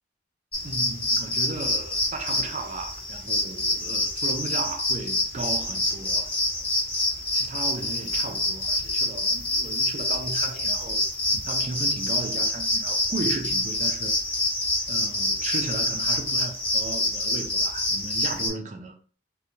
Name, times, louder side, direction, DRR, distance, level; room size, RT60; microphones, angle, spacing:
sound 1, 0.5-18.5, left 1 dB, 30° left, 1.2 m, -26 dB
voice 1, 0.6-6.3 7.3-11.0 11.4-14.1 14.9-19.0, right 3 dB, 40° right, 0.4 m, -35 dB
3.0 x 2.1 x 2.6 m
head